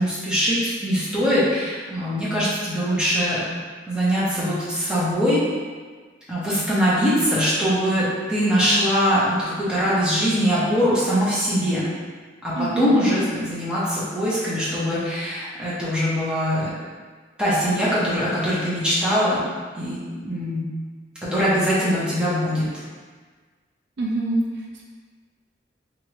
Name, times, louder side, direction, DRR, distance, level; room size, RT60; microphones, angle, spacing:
voice 1, 0.0-3.4 3.9-5.4 6.3-11.8 12.4-16.7 17.4-19.4 19.7-20.7 21.2-22.7, equal, 5° right, -10 dB, 0.8 m, -22 dB
voice 2, 12.5-13.1 24.0-24.8, right 2 dB, 70° right, -2 dB, 0.4 m, -25 dB
3.1 x 2.6 x 3.0 m, 1.5 s
head